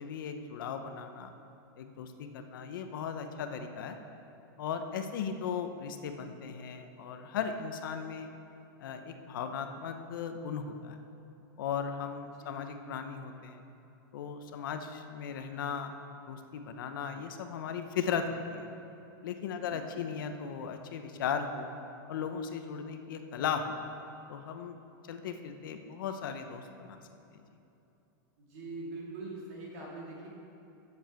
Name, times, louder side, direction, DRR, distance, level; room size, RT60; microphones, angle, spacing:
voice 1, 0.0-1.3 1.8-4.0 4.6-8.3 8.8-11.0 11.6-13.6 14.1-15.9 16.3-18.7 19.2-21.7 22.1-23.8 24.3-24.8 25.1-27.0 27.3-27.4, left 7 dB, 60° left, 7 dB, 0.8 m, -37 dB
voice 2, 28.5-30.3, right 2 dB, 40° right, -3 dB, 2.5 m, -43 dB
8.3 x 6.9 x 7.6 m, 2.9 s
supercardioid pair, 180°, 12 cm